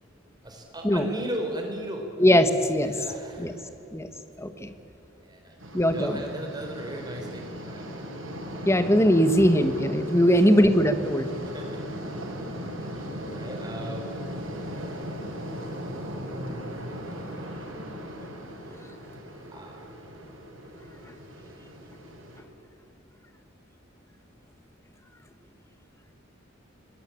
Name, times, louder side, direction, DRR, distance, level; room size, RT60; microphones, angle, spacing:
voice 1, 0.4-2.1 2.7-3.6 5.2-5.6 5.9-7.9 10.1-10.5 11.4-11.7 12.7-13.0 13.3-14.1 16.0-16.7 19.5-19.9, equal, 20° right, 2 dB, 4.6 m, -37 dB
voice 2, 2.2-2.9 3.4-3.6 3.9-4.1 4.4-4.7 5.7-6.2 8.6-11.3, equal, 15° left, 9 dB, 1.5 m, -20 dB
sound 1, 5.6-22.4, equal, 80° right, 5.9 m, -38 dB
25.5 x 21.0 x 8.9 m, 2.7 s
head